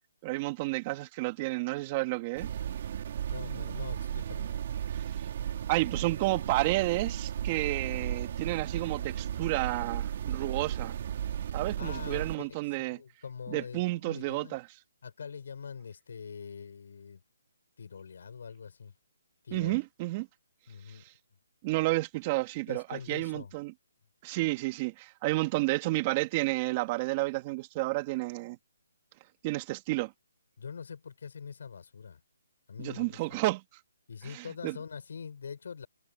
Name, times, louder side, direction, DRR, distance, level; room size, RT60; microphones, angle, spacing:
voice 1, 0.2-2.5 5.7-11.0 11.5-13.0 13.5-14.6 19.5-20.3 20.9-21.0 21.6-23.7 24.2-28.6 29.4-30.1 32.8-33.6 34.2-34.8, right 20 dB, 25° right, 2.0 m, -31 dB
sound 1, 2.3-12.3, right 9 dB, 45° right, 1.9 m, -35 dB
voice 2, 3.3-4.6 7.7-8.1 11.8-14.6 15.0-17.2 17.8-18.9 19.4-19.8 20.7-21.0 22.7-23.5 30.6-32.2 32.7-33.2 34.1-35.9, left 6 dB, 60° left, 6.6 m, -43 dB
hypercardioid pair, 165°, 0 cm